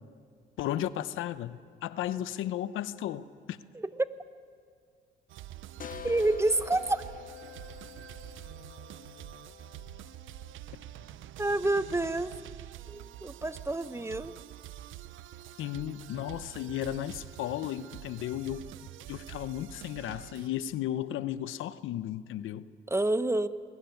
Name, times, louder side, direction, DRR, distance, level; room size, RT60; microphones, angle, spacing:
voice 1, 0.6-3.6 15.6-18.7 19.1-22.6, left 12 dB, 85° left, 0.8 m, -34 dB
voice 2, 3.7-4.1 6.0-7.0 11.4-12.4 12.9-14.4 22.9-23.5, right 2 dB, 15° right, 0.9 m, -28 dB
sound 1, 5.3-20.5, right 13 dB, 80° right, 0.7 m, -46 dB
sound 2, 5.8-11.2, left 9 dB, 45° left, 0.8 m, -48 dB
21.5 x 19.5 x 9.3 m
cardioid pair, 90°, 20 cm